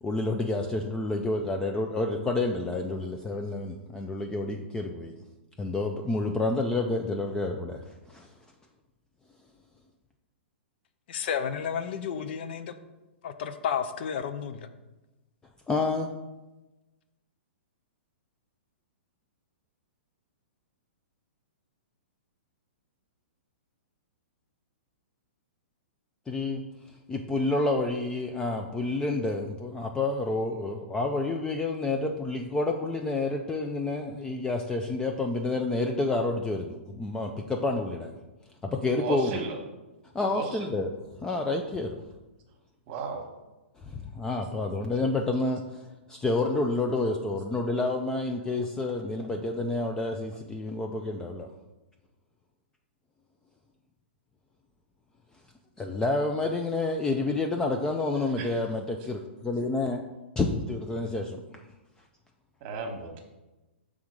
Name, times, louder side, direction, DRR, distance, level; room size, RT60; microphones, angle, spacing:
voice 1, 0.0-5.1 5.6-7.8 8.1-8.3 15.7-16.1 26.3-26.6 27.1-38.1 38.6-39.3 40.1-40.9 41.2-42.0 43.8-51.5 55.8-60.1 60.4-61.4, left 2 dB, 10° left, 3 dB, 0.4 m, -29 dB
voice 2, 11.1-12.7 13.2-14.7, left 7 dB, 60° left, 9 dB, 0.5 m, -32 dB
voice 3, 39.0-39.6 40.3-40.8 42.9-43.3 58.4-58.5 62.6-63.2, right 4 dB, 40° right, 3 dB, 1.2 m, -35 dB
5.8 x 3.7 x 5.0 m, 1.1 s
hypercardioid pair, 135°, 6 cm